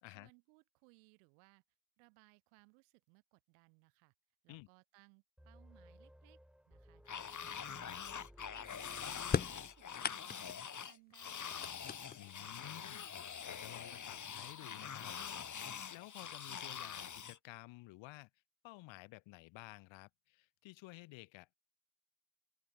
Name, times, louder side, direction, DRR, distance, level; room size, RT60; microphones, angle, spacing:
voice 1, 0.1-1.6 2.0-4.1 4.4-6.4 6.7-11.8, right 40 dB or more, 85° right, 2.7 m, -67 dB
sound 1, 5.4-10.4, equal, ahead, 6.3 m, -61 dB
sound 2, 7.1-17.4, left 7 dB, 40° left, 1.6 m, -45 dB
sound 3, 9.3-10.7 11.2-12.4 13.4-13.5 14.5-14.6 15.1-15.6, left 6 dB, 20° left, 0.5 m, -39 dB
voice 2, 12.2-15.2 15.9-18.3 18.6-21.5, left 20 dB, 80° left, 2.5 m, -54 dB
hypercardioid pair, 45°, 45 cm